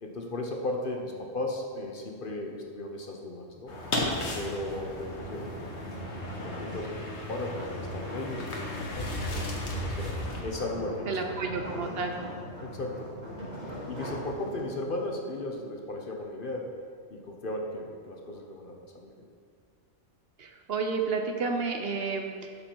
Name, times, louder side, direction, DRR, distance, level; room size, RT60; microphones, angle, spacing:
voice 1, 0.0-3.7 4.3-5.9 6.4-10.2 10.4-11.4 12.6-13.3 13.9-16.7 17.1-19.1, left 1 dB, 50° left, 1 dB, 1.0 m, -36 dB
sound 1, 3.7-10.4, left 1 dB, 65° left, 1.5 m, -35 dB
sound 2, 4.4-14.9, equal, 35° right, 2.4 m, -42 dB
voice 2, 11.1-12.1 20.4-22.6, right 4 dB, 60° right, 4 dB, 0.9 m, -31 dB
11.5 x 5.3 x 4.5 m, 2.2 s
omnidirectional pair, 1.2 m